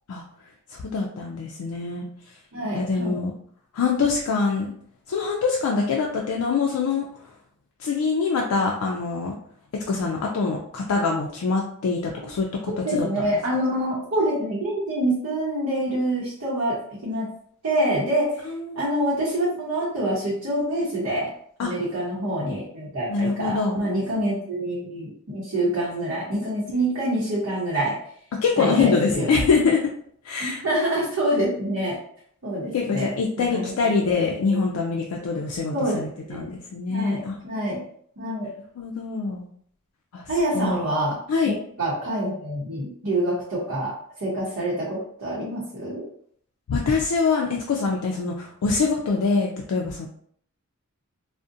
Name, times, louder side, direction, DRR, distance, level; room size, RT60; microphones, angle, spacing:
voice 1, 0.7-2.1 2.7-3.3 3.7-4.7 5.1-7.0 7.8-9.3 9.9-12.5 12.9-13.4 18.5-18.8 21.6-21.7 23.1-23.8 28.4-29.9 30.2-30.6 32.7-37.4 38.8-39.5 40.1-40.2 40.5-40.8 41.3-41.5 46.7-50.1, left 4 dB, 85° left, -1 dB, 0.4 m, -24 dB
voice 2, 2.5-3.2 12.8-17.3 17.6-18.5 18.7-21.3 21.6-28.0 28.6-29.4 30.4-32.0 32.4-33.1 33.4-33.9 34.5-34.6 35.7-36.5 36.9-37.8 38.2-38.5 40.3-41.2 41.4-43.9 44.2-46.1, right 1 dB, 65° right, -8 dB, 0.8 m, -26 dB
2.5 x 2.1 x 2.6 m, 0.63 s
head